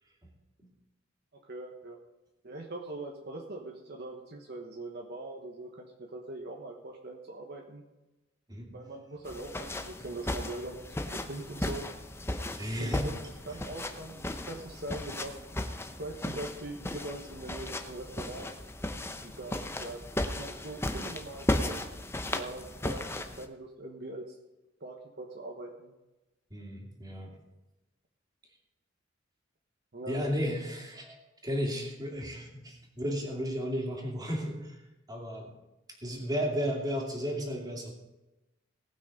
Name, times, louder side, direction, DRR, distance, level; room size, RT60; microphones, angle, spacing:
voice 1, 1.3-2.0 2.4-7.8 8.7-10.8 11.3-11.9 12.7-13.1 13.5-15.3 16.0-18.5 19.2-20.0 20.3-22.0 22.3-24.4 24.8-25.9 29.9-30.3, right 2 dB, 55° right, 1 dB, 1.2 m, -42 dB
sound 1, 9.2-23.5, left 1 dB, 10° left, 0.8 m, -36 dB
voice 2, 12.6-13.0 26.5-27.3 30.1-31.2 31.4-34.8 35.1-35.5 36.0-37.9, equal, 20° right, -1 dB, 2.6 m, -33 dB
18.5 x 6.2 x 5.3 m, 1.0 s
head